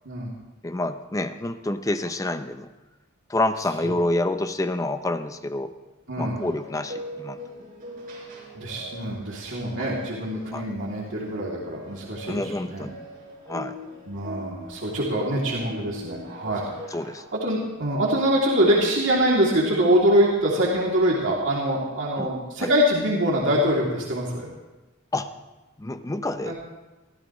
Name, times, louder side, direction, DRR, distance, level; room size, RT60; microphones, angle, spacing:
voice 1, 0.0-0.3 3.8-4.0 6.1-6.4 8.5-12.8 14.1-17.0 17.3-24.5 26.4-26.5, equal, 60° right, -4 dB, 2.9 m, -24 dB
voice 2, 0.6-2.7 3.3-5.7 6.2-7.4 10.5-10.7 12.3-12.9 13.5-13.8 16.9-17.2 22.2-22.3 22.6-22.7 25.1-25.3 25.8-26.5, left 2 dB, 15° left, 9 dB, 0.5 m, -28 dB
sound 1, 6.3-17.1, equal, 45° right, 5.7 m, -41 dB
23.5 x 16.0 x 3.1 m, 1.1 s
head